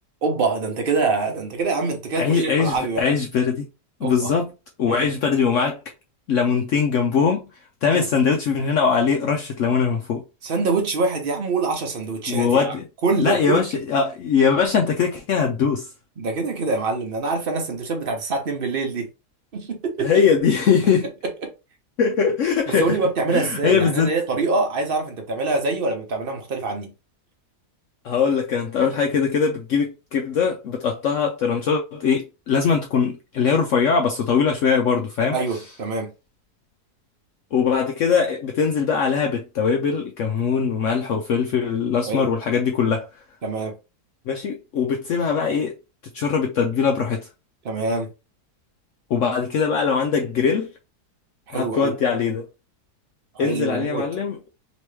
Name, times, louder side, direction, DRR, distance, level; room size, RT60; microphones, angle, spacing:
voice 1, 0.2-3.0 4.0-4.3 4.8-5.0 7.9-8.1 10.4-12.7 13.0-13.6 16.2-19.1 19.5-20.1 22.8-26.9 35.3-36.1 42.1-42.3 43.4-43.8 47.6-48.1 51.5-51.9 53.3-54.0, right 3 dB, 40° right, 0.9 m, -25 dB
voice 2, 2.1-3.7 4.0-4.5 4.8-5.8 6.3-7.4 7.8-10.2 12.3-12.8 13.2-15.9 20.0-21.1 22.0-23.0 23.3-24.1 28.0-35.4 37.5-43.1 44.3-45.8 46.1-47.3 49.1-50.7 51.5-52.5 53.4-54.4, left 6 dB, 70° left, 0.8 m, -21 dB
3.0 x 3.0 x 3.2 m
omnidirectional pair, 1.7 m